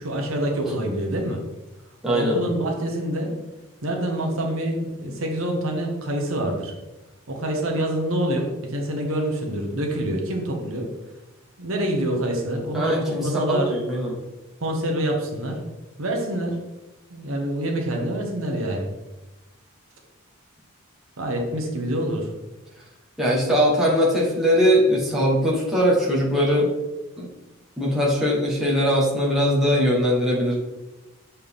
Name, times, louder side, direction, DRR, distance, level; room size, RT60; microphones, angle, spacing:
voice 1, 0.0-1.4 2.1-3.3 3.8-6.7 7.3-10.9 11.6-13.7 14.6-15.6 16.0-16.6 17.1-18.9 21.2-22.3, right 1 dB, 65° right, 1 dB, 1.1 m, -26 dB
voice 2, 2.0-2.5 12.7-14.2 23.2-26.7 27.2-27.3 27.8-30.5, equal, ahead, -6 dB, 1.3 m, -21 dB
6.7 x 4.3 x 3.6 m, 1.0 s
head